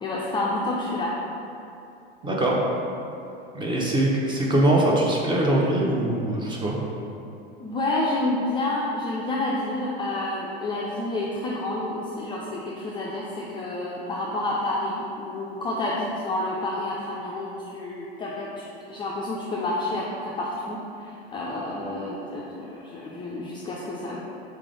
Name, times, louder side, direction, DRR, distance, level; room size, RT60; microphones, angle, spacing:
voice 1, 0.0-1.1 7.6-24.2, left 2 dB, 15° left, -5 dB, 0.4 m, -29 dB
voice 2, 2.2-2.6 3.5-6.8, right 1 dB, 15° right, -3 dB, 0.7 m, -22 dB
4.3 x 3.7 x 3.2 m, 2.8 s
figure-of-eight pair, 85°, 31 cm